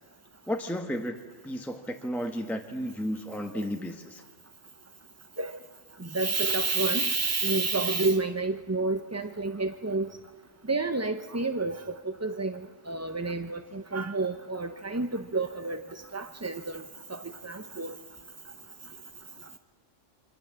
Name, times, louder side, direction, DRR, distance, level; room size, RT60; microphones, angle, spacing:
voice 1, 0.5-1.2 1.4-4.2, equal, ahead, 4 dB, 1.0 m, -33 dB
voice 2, 6.1-10.1 10.7-11.8 12.2-12.6 12.9-15.8 16.1-16.8 17.1-17.2 17.4-17.9, right 3 dB, 20° right, 8 dB, 0.4 m, -29 dB
27.0 x 24.0 x 7.4 m, 1.5 s
omnidirectional pair, 1.3 m